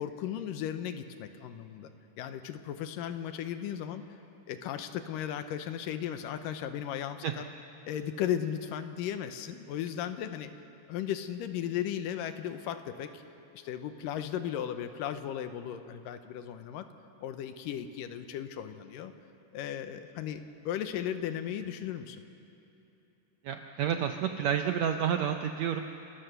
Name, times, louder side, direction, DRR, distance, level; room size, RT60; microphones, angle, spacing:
voice 1, 0.0-1.9 2.2-4.0 4.5-7.4 7.9-10.5 10.9-13.2 13.5-16.9 17.2-19.1 19.5-22.2, left 10 dB, 85° left, 9 dB, 2.5 m, -36 dB
voice 2, 23.4-25.8, right 8 dB, 85° right, 6 dB, 1.5 m, -29 dB
30.0 x 13.5 x 6.8 m, 3.0 s
omnidirectional pair, 3.9 m